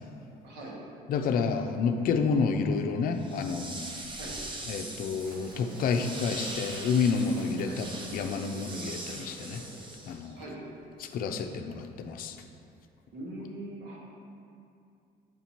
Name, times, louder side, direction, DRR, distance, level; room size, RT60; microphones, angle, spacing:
voice 1, 0.4-0.8 4.1-4.4 7.6-7.8 10.4-10.6 13.1-14.0, right 1 dB, 80° right, -4 dB, 1.4 m, -41 dB
voice 2, 1.1-3.9 4.7-9.6 10.1-10.4 11.0-12.4, left 5 dB, 60° left, 6 dB, 0.5 m, -29 dB
sound 1, 3.2-10.4, right 2 dB, 30° right, 0.8 m, -41 dB
sound 2, 5.2-10.1, right 1 dB, 55° right, 1.5 m, -49 dB
8.1 x 2.8 x 4.4 m, 2.5 s
cardioid pair, 110°, 17 cm